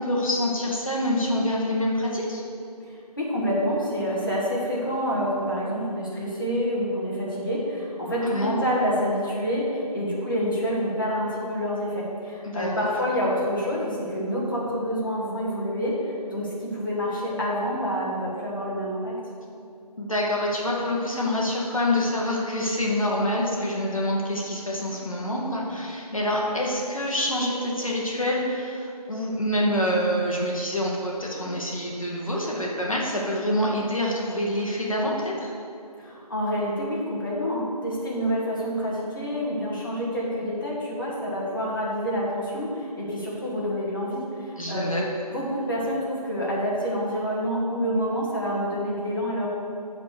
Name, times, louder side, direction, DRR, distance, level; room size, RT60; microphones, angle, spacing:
voice 1, 0.0-2.4 8.2-8.5 12.4-12.9 20.0-35.5 44.6-45.1, left 1 dB, 55° left, -3 dB, 1.4 m, -26 dB
voice 2, 3.2-19.2 36.0-45.1 45.3-49.5, equal, 30° left, -6 dB, 1.5 m, -27 dB
11.0 x 4.2 x 6.5 m, 2.6 s
figure-of-eight pair, 175°, 21 cm